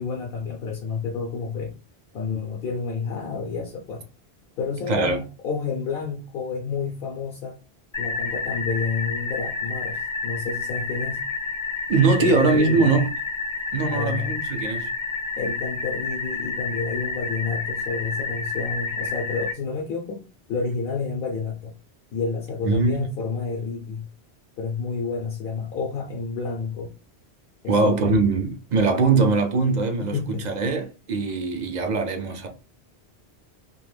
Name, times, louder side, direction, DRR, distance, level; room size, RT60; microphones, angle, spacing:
voice 1, 0.0-1.7 2.1-4.1 4.6-7.6 8.0-11.2 12.2-12.9 13.9-14.3 15.4-20.2 20.5-21.7 22.1-24.1 24.6-26.9 27.6-28.2 30.0-30.5, left 4 dB, 65° left, 0.7 m, -29 dB
voice 2, 4.9-5.2 11.9-13.1 13.7-14.9 22.6-23.0 27.7-32.5, right 4 dB, 55° right, 0.5 m, -22 dB
sound 1, 7.9-19.5, left 4 dB, 45° left, 0.4 m, -30 dB
2.3 x 2.1 x 3.2 m
omnidirectional pair, 1.1 m